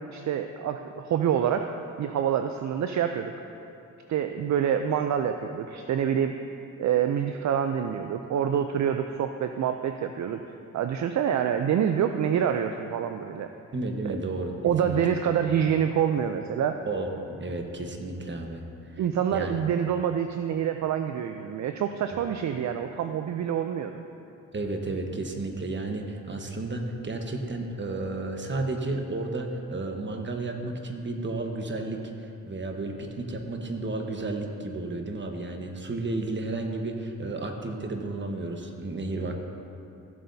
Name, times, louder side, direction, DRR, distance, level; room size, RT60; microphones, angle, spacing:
voice 1, 0.0-1.7 2.0-3.3 4.1-6.3 6.8-10.4 10.7-13.5 14.0-14.2 14.6-16.8 19.0-24.0, right 8 dB, 55° right, 7 dB, 0.5 m, -26 dB
voice 2, 13.7-14.5 14.8-15.0 16.9-19.0 19.3-19.5 24.5-39.4, right 2 dB, 35° right, 3 dB, 1.2 m, -32 dB
14.5 x 7.6 x 2.8 m, 2.7 s
cardioid pair, 65°, 34 cm